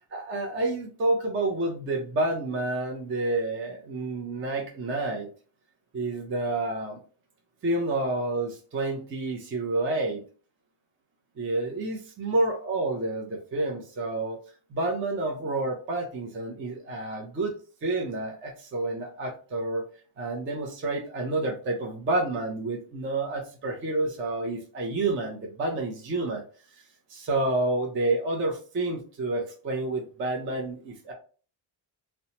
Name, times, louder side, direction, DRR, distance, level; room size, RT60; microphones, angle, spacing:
voice 1, 0.1-5.3 5.9-7.0 7.6-10.2 11.4-14.4 14.7-17.5 17.8-19.9 20.2-26.4 27.1-31.1, right 2 dB, 25° right, 1 dB, 0.4 m, -29 dB
2.7 x 2.1 x 2.8 m, 0.38 s
cardioid pair, 170°, 50 cm